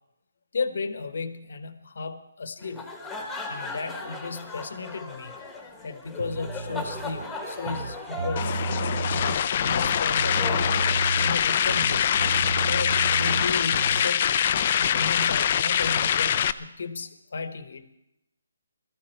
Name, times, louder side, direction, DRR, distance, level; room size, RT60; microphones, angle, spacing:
voice 1, 0.5-2.9 3.5-5.4 5.8-10.7 11.2-12.1 12.7-14.4 14.8-18.0, left 4 dB, 55° left, 10 dB, 1.2 m, -34 dB
sound 1, 2.6-11.6, left 2 dB, 5° left, 1.4 m, -38 dB
sound 2, 6.2-14.1, right 3 dB, 45° right, 0.9 m, -32 dB
sound 3, 8.4-16.5, left 9 dB, 30° left, 0.5 m, -24 dB
21.5 x 13.5 x 4.5 m, 0.86 s
hypercardioid pair, 170°, 0 cm